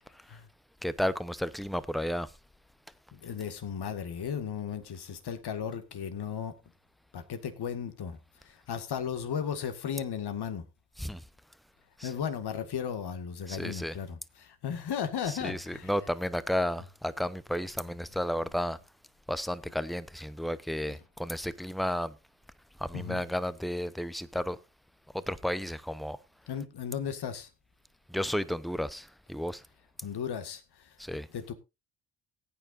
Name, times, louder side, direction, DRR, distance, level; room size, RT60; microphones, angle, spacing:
voice 1, 0.8-2.3 11.0-11.2 12.0-12.1 13.5-13.9 15.4-18.8 19.3-22.1 22.9-24.6 25.3-26.2 28.1-29.6 31.0-31.3, equal, ahead, 0.8 m, -32 dB
voice 2, 3.1-6.5 7.1-8.2 8.4-10.7 12.0-15.9 20.9-21.0 22.9-23.2 26.5-27.5 30.0-30.9 31.3-31.5, left 7 dB, 55° left, 1.9 m, -35 dB
18.0 x 9.0 x 2.6 m
hypercardioid pair, 45°, 45 cm